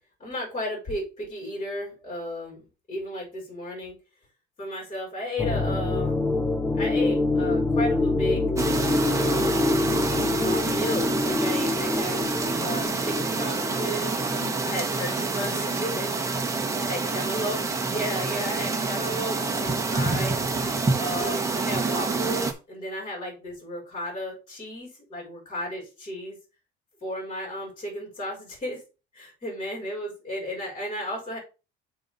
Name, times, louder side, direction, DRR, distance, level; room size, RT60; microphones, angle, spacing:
voice 1, 0.2-4.0 4.6-6.2 6.7-8.4 9.0-9.7 10.4-12.2 12.6-14.1 14.6-17.6 17.9-20.4 21.0-26.4 27.0-28.8 29.1-31.4, left 1 dB, 25° left, -2 dB, 4.4 m, -34 dB
sound 1, 5.4-14.5, left 2 dB, 10° left, 0.6 m, -26 dB
sound 2, 8.6-22.5, right 3 dB, 15° right, 0.9 m, -27 dB
6.8 x 4.0 x 5.3 m, 0.31 s
cardioid pair, 155°, 21 cm